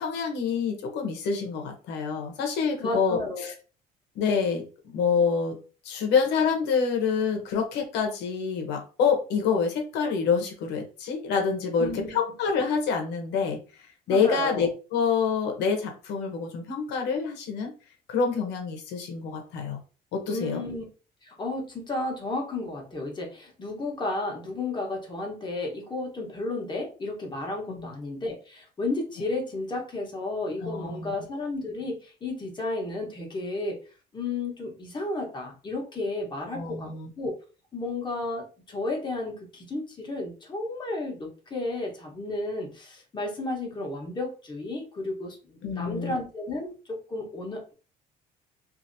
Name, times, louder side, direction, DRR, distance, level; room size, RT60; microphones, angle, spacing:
voice 1, 0.0-3.5 4.1-4.6 4.9-5.5 5.8-13.6 14.1-17.7 18.1-19.8 20.1-20.6 27.7-27.9 30.6-31.1 36.5-37.1 45.6-46.1, left 5 dB, 90° left, 3 dB, 1.0 m, -27 dB
voice 2, 2.8-3.5 11.8-12.2 14.1-14.7 20.3-20.9 21.2-33.8 34.1-36.9 37.2-37.3 37.7-47.7, left 2 dB, 25° left, 0 dB, 1.2 m, -33 dB
2.8 x 2.7 x 2.7 m, 0.35 s
cardioid pair, 110°, 17 cm